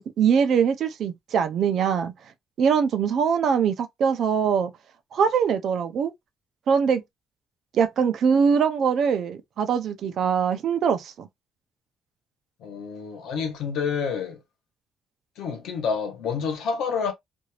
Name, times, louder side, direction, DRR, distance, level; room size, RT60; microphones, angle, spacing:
voice 1, 0.0-2.1 2.6-4.7 5.1-6.1 6.7-7.0 7.7-11.3, right 7 dB, 50° right, 0.5 m, -22 dB
voice 2, 12.6-14.4 15.4-17.1, left 6 dB, 80° left, 1.0 m, -28 dB
2.6 x 2.4 x 3.2 m
cardioid pair, 175°, 0 cm